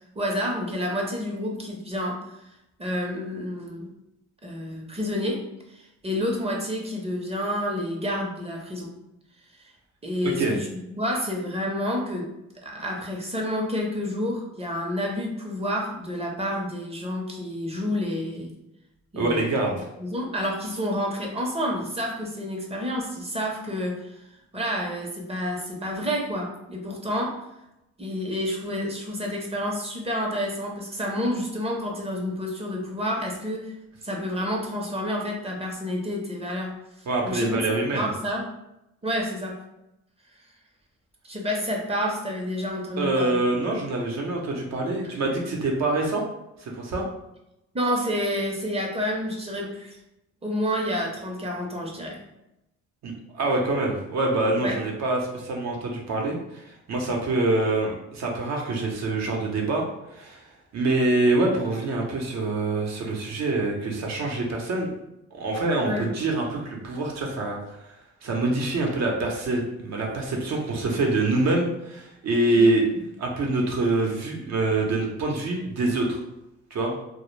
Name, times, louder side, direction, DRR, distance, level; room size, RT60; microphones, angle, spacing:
voice 1, 0.2-2.2 2.8-3.9 4.4-5.5 5.7-8.9 10.0-12.3 12.6-18.6 19.1-19.5 20.0-24.2 24.5-27.4 28.0-33.7 34.0-36.8 37.2-37.6 37.9-38.5 39.0-39.6 41.2-43.4 45.0-45.1 47.7-50.0 50.4-52.2 54.6-54.8 65.8-66.1 72.5-72.9, equal, 20° right, 0 dB, 0.6 m, -29 dB
voice 2, 19.2-19.9 37.1-38.1 43.0-46.2 46.6-47.0 53.0-59.8 60.1-60.4 60.7-64.9 65.3-67.6 68.2-72.9 73.2-76.2 76.7-76.9, right 2 dB, 60° right, 0 dB, 0.7 m, -25 dB
2.1 x 2.0 x 3.1 m, 0.87 s
cardioid pair, 90°, 30 cm